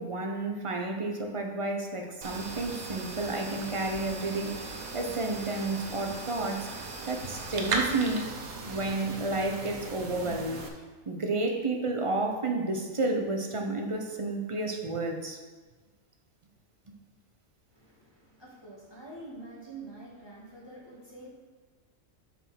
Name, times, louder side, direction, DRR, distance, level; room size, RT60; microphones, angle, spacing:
voice 1, 0.0-6.7 7.1-8.3 8.6-10.6 11.1-15.4, right 2 dB, 30° right, 3 dB, 0.7 m, -31 dB
sound 1, 2.2-10.7, right 3 dB, 80° right, 1.3 m, -37 dB
voice 2, 17.7-21.3, right 2 dB, 20° left, -5 dB, 1.8 m, -46 dB
7.1 x 4.4 x 6.1 m, 1.3 s
omnidirectional pair, 1.4 m